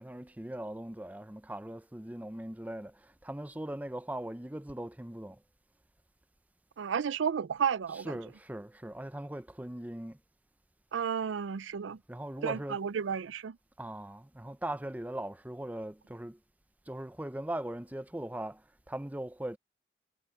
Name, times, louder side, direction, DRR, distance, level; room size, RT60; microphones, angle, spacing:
voice 1, 0.0-5.4 7.9-10.2 12.1-12.9 13.8-16.4 16.9-19.6, right 1 dB, 10° right, 0.5 m, -40 dB
voice 2, 6.8-8.2 10.9-12.0 12.4-13.6, right 7 dB, 85° right, 0.4 m, -32 dB
head